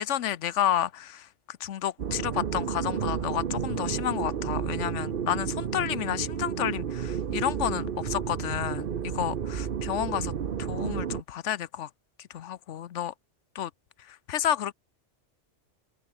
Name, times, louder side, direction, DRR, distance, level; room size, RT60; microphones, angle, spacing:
voice 1, 0.0-10.3 10.6-11.9 12.2-13.1 13.5-13.7 14.0-14.7, left 11 dB, 85° left, 1.1 m, -31 dB
sound 1, 2.0-11.2, right 8 dB, 50° right, 1.0 m, -31 dB
omnidirectional pair, 1.2 m